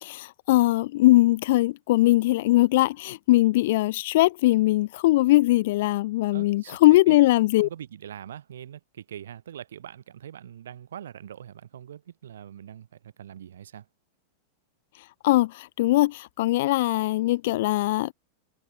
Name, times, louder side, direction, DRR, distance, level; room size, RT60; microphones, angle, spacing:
voice 1, 0.0-7.7 15.2-18.1, left 17 dB, 55° left, 0.7 m, -21 dB
voice 2, 6.3-6.8 7.1-7.2 7.6-13.9, right 10 dB, 65° right, 2.6 m, -42 dB
figure-of-eight pair, 90°, 0 cm